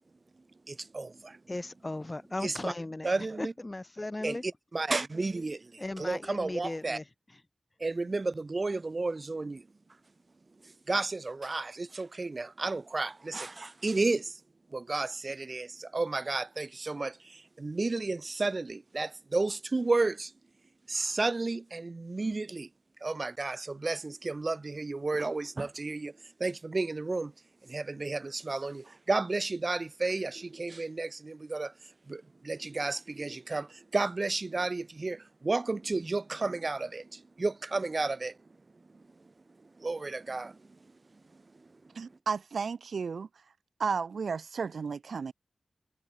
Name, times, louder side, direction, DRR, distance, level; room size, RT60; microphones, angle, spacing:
voice 1, 0.7-1.4 2.4-2.7 3.0-3.5 4.2-5.7 6.0-7.0 7.8-9.6 10.9-14.3 14.7-20.3 20.9-22.7 23.0-26.1 26.4-27.3 27.6-31.7 32.1-38.3 39.8-40.6, right 3 dB, 45° right, 2.0 m, -32 dB
voice 2, 1.5-4.4 5.8-7.4 7.9-8.1, left 2 dB, 30° left, 2.1 m, -37 dB
voice 3, 41.9-43.3 43.8-45.3, right 5 dB, 85° right, 1.1 m, -33 dB
wide cardioid pair, 65°, 0 cm